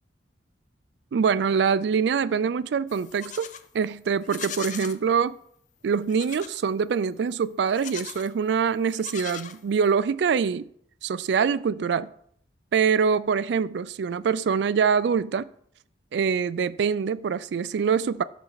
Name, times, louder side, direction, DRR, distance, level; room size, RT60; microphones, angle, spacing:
voice 1, 1.1-5.4 5.8-10.7 11.0-12.1 12.7-15.5 16.1-18.2, right 6 dB, 65° right, 0.3 m, -24 dB
Livestock farm animals working animals, 2.9-3.7 4.2-5.0 6.1-6.6 7.7-8.3 8.9-9.9, left 8 dB, 40° left, 0.4 m, -39 dB
12.0 x 4.1 x 3.9 m
head